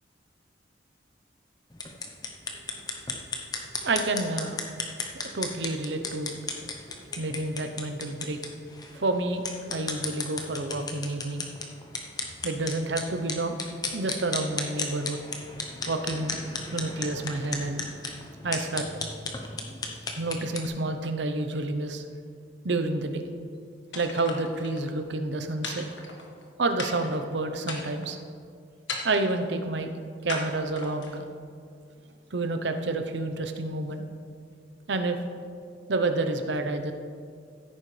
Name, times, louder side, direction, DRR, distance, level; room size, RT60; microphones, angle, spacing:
sound 1, 1.7-20.7, left 3 dB, 20° left, 0.9 m, -35 dB
voice 1, 3.8-4.6 5.1-6.3 7.2-8.4 8.9-11.5 12.4-13.6 13.9-15.2 15.9-16.4 16.7-17.8 18.4-18.9 20.1-22.0 22.6-23.2 23.9-25.8 26.6-28.2 29.0-29.9 30.2-31.2 32.3-34.0 34.9-35.2 35.9-36.9, right 2 dB, 75° right, 7 dB, 0.8 m, -29 dB
sound 2, 23.9-24.8 25.6-26.4 26.8-27.2 27.6-28.2 28.9-29.4 30.3-31.2, left 3 dB, 85° left, 1.5 m, -37 dB
15.5 x 9.0 x 3.3 m, 2.2 s
head